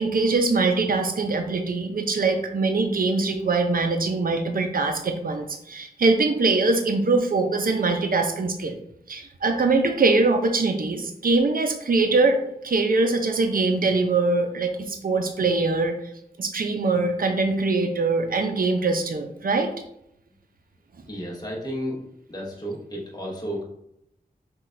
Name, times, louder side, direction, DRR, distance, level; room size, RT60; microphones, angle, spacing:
voice 1, 0.0-8.8 9.1-15.9 16.4-19.7, right 3 dB, 65° right, 5 dB, 0.5 m, -23 dB
voice 2, 21.1-22.0 22.3-23.6, equal, 25° left, -3 dB, 0.9 m, -32 dB
5.6 x 2.3 x 2.5 m, 0.77 s
wide cardioid pair, 60°, 16 cm